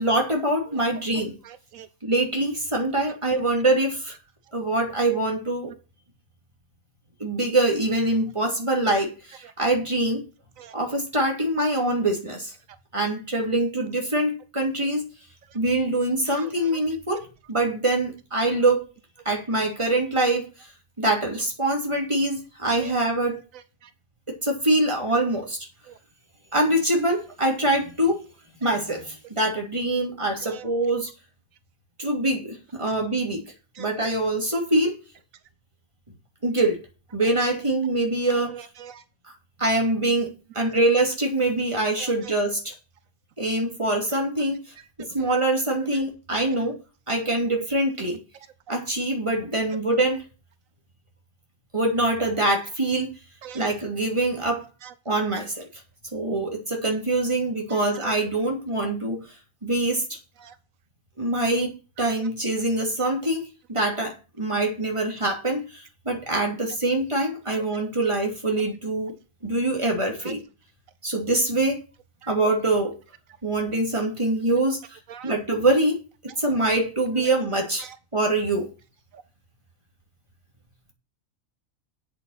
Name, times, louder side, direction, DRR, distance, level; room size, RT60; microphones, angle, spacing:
voice 1, 0.0-1.4 2.0-4.1 4.5-5.7 7.2-10.2 10.7-12.5 12.9-15.0 15.5-18.9 19.2-20.5 21.0-23.4 24.3-25.6 26.5-28.2 28.6-31.1 32.0-33.4 33.8-35.0 36.4-36.8 37.1-38.5 39.6-42.8 43.4-44.6 45.0-46.8 47.1-48.2 48.7-50.2 51.7-53.1 53.5-54.7 55.0-55.6 56.1-59.2 59.6-60.2 61.2-69.1 69.4-70.4 71.0-71.8 72.3-72.9 73.4-74.8 75.2-76.0 76.4-77.9 78.1-78.7, right 2 dB, 20° right, 1 dB, 2.9 m, -24 dB
voice 2, 38.5-38.9 42.0-42.1 53.4-53.7 60.4-60.5 75.1-75.3, right 9 dB, 80° right, 12 dB, 1.1 m, -41 dB
8.3 x 7.2 x 7.3 m, 0.33 s
omnidirectional pair, 1.4 m